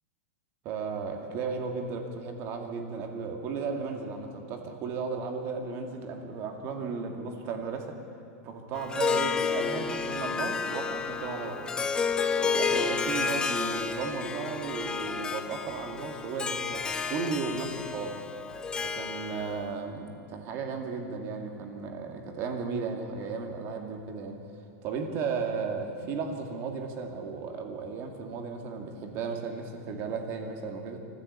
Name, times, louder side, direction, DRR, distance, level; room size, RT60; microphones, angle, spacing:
voice 1, 0.6-8.0 8.4-11.8 12.4-18.2 18.8-24.4 24.8-31.0, right 5 dB, 30° right, 4 dB, 2.2 m, -35 dB
Harp, 8.8-19.7, left 5 dB, 10° left, 0.7 m, -31 dB
24.0 x 15.5 x 8.3 m, 2.3 s
supercardioid pair, 175°, 8 cm